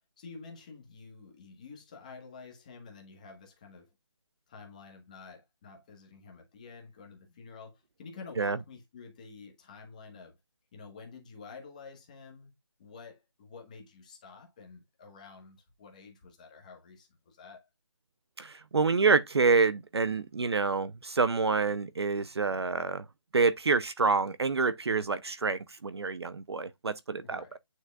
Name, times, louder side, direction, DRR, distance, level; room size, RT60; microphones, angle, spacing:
voice 1, 0.2-3.9 4.5-10.4 10.7-12.5 12.8-17.7 24.9-25.1 27.2-27.6, left 4 dB, 15° left, 1.2 m, -49 dB
voice 2, 18.4-23.0 23.3-27.4, right 4 dB, 55° right, 0.6 m, -27 dB
9.9 x 6.3 x 2.3 m
hypercardioid pair, 175°, 16 cm